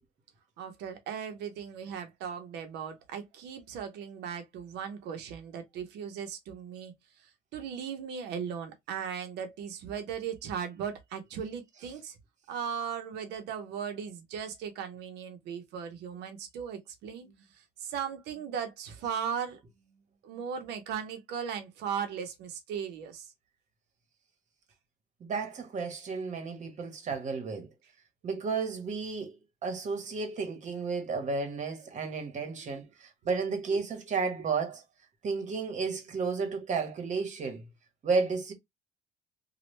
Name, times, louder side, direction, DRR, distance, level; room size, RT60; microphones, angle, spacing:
voice 1, 0.6-6.9 7.5-12.2 12.5-19.6 20.2-23.3 32.0-32.1 32.6-32.7 33.7-33.8, right 7 dB, 85° right, 0.9 m, -37 dB
voice 2, 25.2-27.7 28.2-34.8 35.2-37.6 38.0-38.5, right 4 dB, 45° right, 1.2 m, -32 dB
3.1 x 2.4 x 3.1 m
cardioid pair, 110°, 17 cm